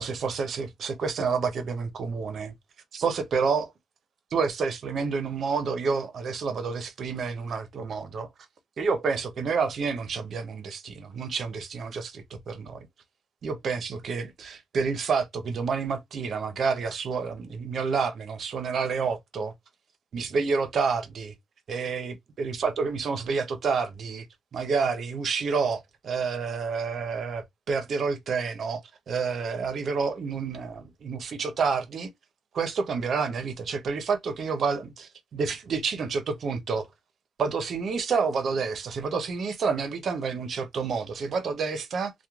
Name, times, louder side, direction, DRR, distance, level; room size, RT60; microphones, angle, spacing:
voice 1, 0.0-2.5 2.9-3.7 4.3-8.3 8.8-12.9 13.4-19.5 20.1-21.3 21.7-24.3 24.5-28.8 29.1-32.1 32.5-36.9 37.4-42.1, right 5 dB, 55° right, 0.6 m, -29 dB
2.9 x 2.1 x 2.3 m
cardioid pair, 90°, 0 cm